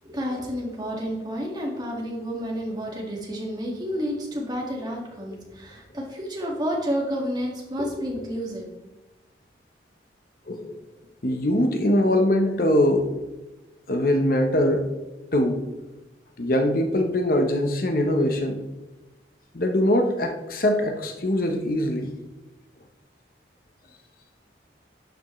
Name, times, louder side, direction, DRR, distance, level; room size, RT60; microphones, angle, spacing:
voice 1, 0.0-8.7, equal, 25° right, -2 dB, 1.9 m, -30 dB
voice 2, 10.5-10.8 11.2-13.1 13.9-14.8 15.3-15.6 16.4-18.6 19.5-22.1, left 1 dB, 50° left, 5 dB, 0.9 m, -22 dB
11.5 x 7.0 x 3.2 m, 1.1 s
head